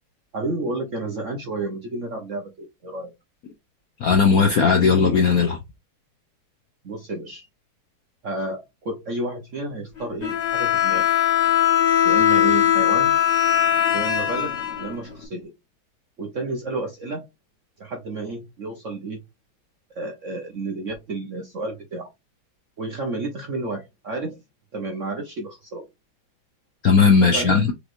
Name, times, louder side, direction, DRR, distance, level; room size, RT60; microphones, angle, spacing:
voice 1, 0.3-3.1 6.8-7.5 8.2-11.1 12.0-13.2 13.9-15.5 16.2-17.3 17.8-19.2 19.9-22.1 22.8-24.4 24.7-25.8 27.3-27.7, right 2 dB, 60° right, 0.8 m, -31 dB
voice 2, 4.0-5.6 26.8-27.6, left 5 dB, 70° left, 0.9 m, -17 dB
Bowed string instrument, 10.2-15.2, left 11 dB, 40° left, 1.3 m, -20 dB
5.0 x 3.1 x 2.5 m
omnidirectional pair, 2.3 m